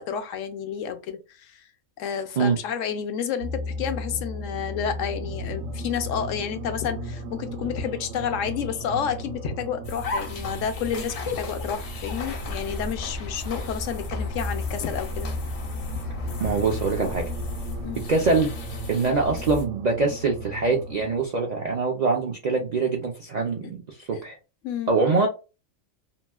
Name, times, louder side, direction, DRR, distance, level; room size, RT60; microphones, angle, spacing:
voice 1, 0.0-1.6 2.0-15.3 17.8-18.0 23.6-23.7 24.1-24.2 24.6-24.9, left 8 dB, 75° left, 0.9 m, -30 dB
sound 1, 3.4-21.3, equal, 90° right, 1.0 m, -36 dB
sound 2, 9.8-19.6, left 2 dB, 60° left, 0.3 m, -34 dB
voice 2, 16.4-17.2 18.1-18.5 18.9-24.4 24.9-25.3, right 4 dB, 55° right, 0.4 m, -24 dB
3.0 x 2.6 x 2.2 m
omnidirectional pair, 1.3 m